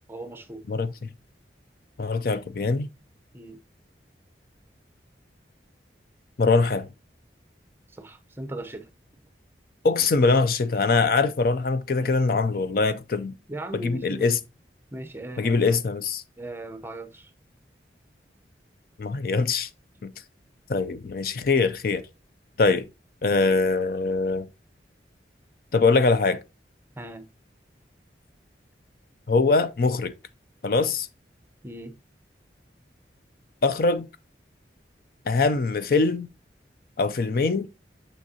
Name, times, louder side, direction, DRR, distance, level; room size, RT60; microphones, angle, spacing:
voice 1, 0.1-0.6 3.3-3.6 7.9-8.9 13.5-14.3 14.9-15.8 16.4-17.3 27.0-27.2 31.6-31.9, right 1 dB, 10° right, 0.7 m, -38 dB
voice 2, 2.0-2.9 6.4-6.9 9.8-13.4 13.7-14.4 15.4-16.2 19.0-19.7 20.0-20.1 20.7-22.0 22.6-22.9 23.2-24.5 25.7-26.4 29.3-30.1 30.6-31.1 33.6-34.1 35.3-36.3 37.0-37.7, left 4 dB, 50° left, 0.5 m, -22 dB
6.4 x 6.2 x 2.8 m
head